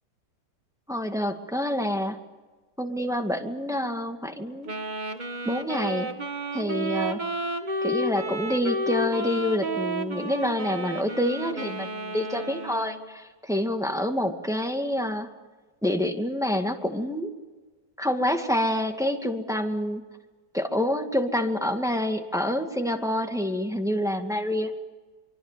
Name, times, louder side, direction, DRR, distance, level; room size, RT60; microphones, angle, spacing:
voice 1, 0.9-2.2 2.8-4.7 5.4-6.1 6.5-7.2 7.8-15.3 15.8-17.3 18.0-20.0 20.5-24.7, left 1 dB, ahead, 4 dB, 2.0 m, -27 dB
Wind instrument woodwind instrument, 4.7-13.2, right 1 dB, 25° right, 1.8 m, -31 dB
25.5 x 24.0 x 7.6 m, 1.3 s
omnidirectional pair, 1.8 m